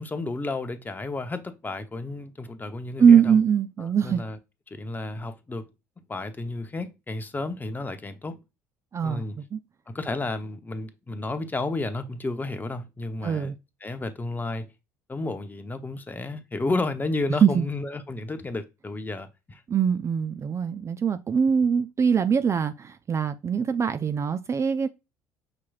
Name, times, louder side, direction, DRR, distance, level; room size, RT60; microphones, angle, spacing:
voice 1, 0.0-3.4 3.8-4.4 4.7-5.7 6.1-8.4 9.0-9.4 9.9-13.5 13.8-14.7 15.1-19.6, left 2 dB, 20° left, 0.8 m, -32 dB
voice 2, 3.0-4.2 8.9-9.6 13.2-13.6 17.4-17.6 19.7-24.9, right 7 dB, 30° right, 0.4 m, -22 dB
5.9 x 3.0 x 2.4 m
hypercardioid pair, 60°, 9 cm